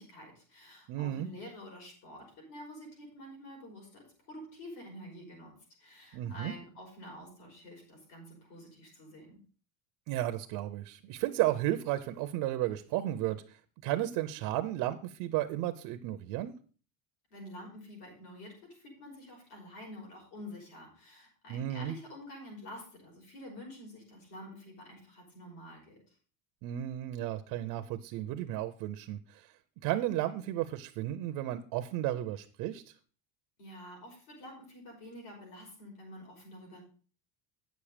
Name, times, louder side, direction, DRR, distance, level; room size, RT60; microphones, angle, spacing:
voice 1, 0.0-5.5 5.8-9.4 17.3-26.2 33.6-36.8, left 1 dB, 65° left, -1 dB, 5.4 m, -48 dB
voice 2, 0.9-1.3 6.1-6.5 10.1-16.5 21.5-21.9 26.6-29.5 29.8-32.9, right 14 dB, 50° right, 9 dB, 0.6 m, -33 dB
9.3 x 7.3 x 4.9 m, 0.40 s
cardioid pair, 180°, 44 cm